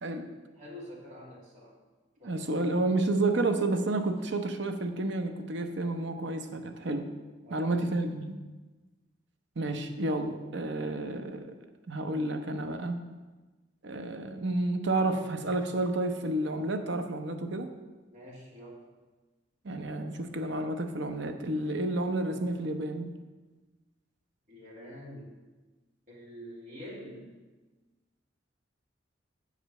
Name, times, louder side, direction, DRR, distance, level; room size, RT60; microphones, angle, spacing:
voice 1, 0.2-1.7 2.2-2.6 7.4-7.9 18.1-18.8 24.5-25.4 26.1-27.3, equal, 45° right, -6 dB, 2.5 m, -46 dB
voice 2, 2.2-7.1 7.5-8.4 9.6-11.5 11.9-13.0 13.8-17.7 19.6-23.1, right 2 dB, 65° right, 6 dB, 0.8 m, -30 dB
8.0 x 5.0 x 6.5 m, 1.2 s
head